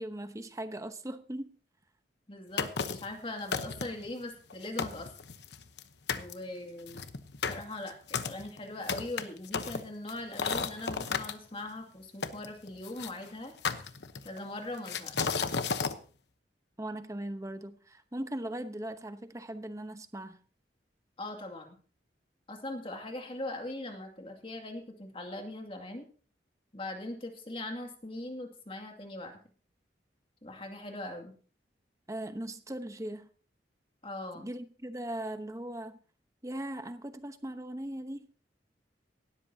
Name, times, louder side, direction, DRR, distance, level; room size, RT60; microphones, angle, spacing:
voice 1, 0.0-1.5 16.8-20.4 32.1-33.3 34.3-36.0 36.4-38.3, right 1 dB, 20° right, 0.9 m, -39 dB
voice 2, 2.3-5.1 6.2-7.0 7.5-13.5 14.2-15.3 21.2-21.8 22.5-26.1 26.7-29.4 30.4-31.3 34.0-34.5, left 2 dB, 30° left, 2.3 m, -40 dB
sound 1, 2.6-3.1 3.5-4.1 4.5-4.6 4.8-5.8 6.1-6.3 6.9-11.3 12.2-13.1 13.6-14.4 14.9-16.0, left 5 dB, 75° left, 1.0 m, -33 dB
18.0 x 13.0 x 2.8 m
head